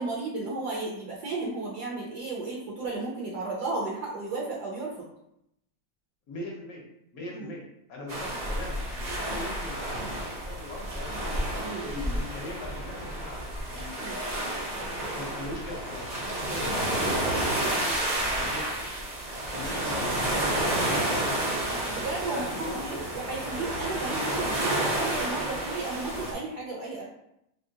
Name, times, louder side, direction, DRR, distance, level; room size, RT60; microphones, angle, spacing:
voice 1, 0.0-5.1 7.3-7.5 11.6-11.9 14.0-14.2 18.4-18.5 21.9-27.0, right 3 dB, 65° right, -3 dB, 1.1 m, -34 dB
voice 2, 6.3-6.8 7.1-11.1 11.8-14.5 15.1-17.9 18.3-18.8 19.5-22.0 22.3-23.1, left 2 dB, 55° left, -2 dB, 1.2 m, -41 dB
sound 1, 8.1-26.3, right 1 dB, 50° right, 0.5 m, -30 dB
3.7 x 2.8 x 2.7 m, 0.79 s
omnidirectional pair, 2.0 m